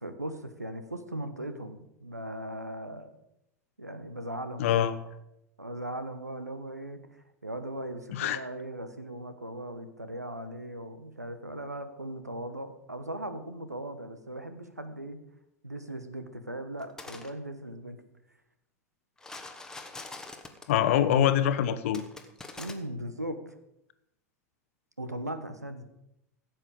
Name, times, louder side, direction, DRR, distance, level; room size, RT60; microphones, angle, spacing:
voice 1, 0.0-3.2 3.8-4.7 5.6-15.2 15.6-18.0 22.6-23.6 25.0-25.8, right 1 dB, 90° right, 10 dB, 1.1 m, -38 dB
voice 2, 4.6-4.9 8.1-8.4 20.7-22.0, left 10 dB, 55° left, 11 dB, 1.0 m, -24 dB
sound 1, 16.8-17.3 19.2-20.8 21.9-22.7, left 3 dB, 5° left, 1.2 m, -43 dB
15.5 x 7.6 x 5.2 m, 0.83 s
figure-of-eight pair, 90°, 9 cm